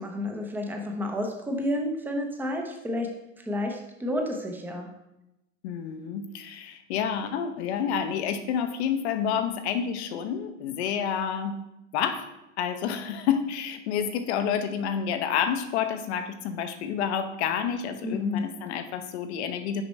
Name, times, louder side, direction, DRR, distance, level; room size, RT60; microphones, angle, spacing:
voice 1, 0.0-3.1 3.5-4.9 18.0-18.4, left 1 dB, 5° right, 2 dB, 0.7 m, -30 dB
voice 2, 5.6-11.6 11.9-12.3 12.6-19.8, left 8 dB, 55° left, 9 dB, 0.8 m, -29 dB
6.3 x 5.0 x 3.2 m, 0.91 s
hypercardioid pair, 115°, 40 cm